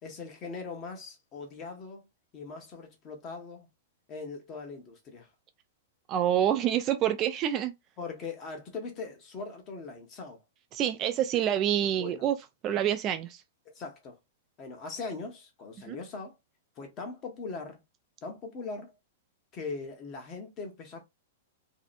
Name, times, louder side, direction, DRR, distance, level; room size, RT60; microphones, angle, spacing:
voice 1, 0.0-2.1 2.3-3.7 4.1-5.3 8.0-10.4 12.0-12.3 13.6-14.2 14.6-16.4 16.8-17.8 18.2-18.9 19.5-21.0, left 4 dB, 30° left, 0.9 m, -40 dB
voice 2, 6.1-7.7 10.7-12.3 12.6-13.4 15.9-16.0, right 10 dB, 30° right, 0.3 m, -27 dB
2.7 x 2.1 x 2.5 m
hypercardioid pair, 150°, 0 cm